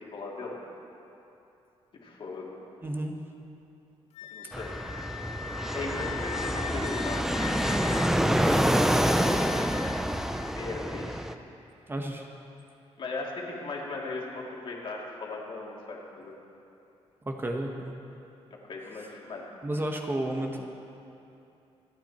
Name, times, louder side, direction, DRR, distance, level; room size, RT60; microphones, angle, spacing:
voice 1, 0.1-0.6 2.0-2.6 4.3-4.9 5.7-7.7 8.4-8.9 10.5-11.2 13.0-16.3 18.5-19.4, left 3 dB, 50° left, -3 dB, 2.9 m, -38 dB
voice 2, 2.8-3.1 11.9-12.3 17.2-17.9 19.6-20.7, right 1 dB, 20° right, 2 dB, 1.2 m, -32 dB
Wind instrument woodwind instrument, 4.1-10.5, left 9 dB, 85° left, 0.5 m, -40 dB
Fixed-wing aircraft airplane, 4.5-11.3, equal, 5° right, 0.6 m, -27 dB
26.5 x 9.1 x 4.4 m, 2.8 s
cardioid pair, 105°, 11 cm